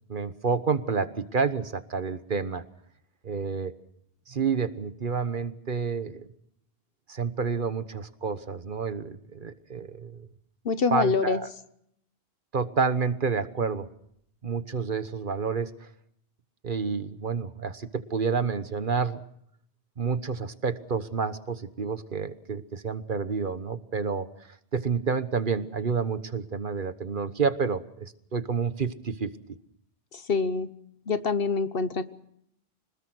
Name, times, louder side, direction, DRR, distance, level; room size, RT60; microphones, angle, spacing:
voice 1, 0.1-2.6 3.2-3.7 4.3-6.3 7.1-10.3 10.9-11.5 12.5-13.9 14.4-15.9 16.6-19.2 20.0-24.3 24.7-29.4, right 5 dB, 50° right, 12 dB, 1.3 m, -29 dB
voice 2, 10.6-11.4 30.1-30.7 31.1-32.0, left 4 dB, 60° left, 12 dB, 1.3 m, -25 dB
25.5 x 20.0 x 6.2 m, 0.71 s
omnidirectional pair, 1.1 m